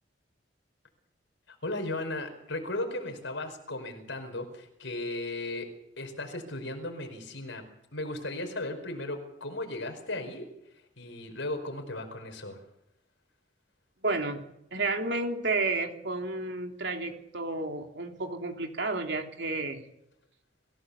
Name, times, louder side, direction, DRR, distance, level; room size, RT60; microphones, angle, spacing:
voice 1, 1.5-5.7 6.0-7.6 7.9-10.5 11.0-12.6, left 2 dB, 80° left, 6 dB, 4.9 m, -36 dB
voice 2, 14.0-14.5 14.7-19.8, right 3 dB, 65° right, 3 dB, 3.0 m, -31 dB
26.5 x 16.0 x 7.1 m, 0.84 s
head